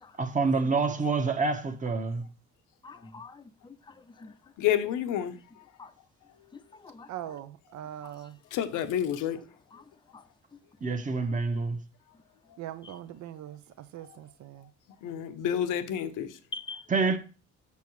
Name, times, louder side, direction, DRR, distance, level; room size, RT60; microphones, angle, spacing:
voice 1, 0.2-2.2 10.8-11.8 16.9-17.2, right 4 dB, 25° right, 1.0 m, -27 dB
voice 2, 2.8-4.3 5.8-5.9 6.5-7.1 8.0-8.1 9.7-9.8 10.1-10.2 12.8-12.9 16.5-16.9, left 4 dB, 15° left, 0.6 m, -44 dB
voice 3, 4.6-5.4 8.5-9.4 15.0-16.4, left 10 dB, 85° left, 0.8 m, -29 dB
voice 4, 7.1-8.4 12.6-14.7, right 11 dB, 70° right, 0.6 m, -41 dB
7.0 x 6.9 x 3.1 m
cardioid pair, 90°, 30 cm